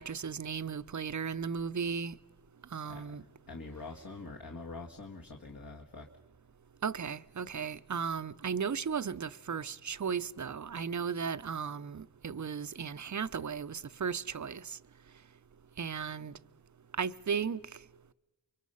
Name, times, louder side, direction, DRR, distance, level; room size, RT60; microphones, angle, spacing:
voice 1, 0.0-2.2 2.7-3.2 6.8-14.8 15.8-16.4 17.0-17.6, right 6 dB, 40° right, 0.7 m, -35 dB
voice 2, 3.5-6.1, left 3 dB, 50° left, 1.8 m, -45 dB
29.0 x 23.5 x 5.6 m
cardioid pair, 45°, 44 cm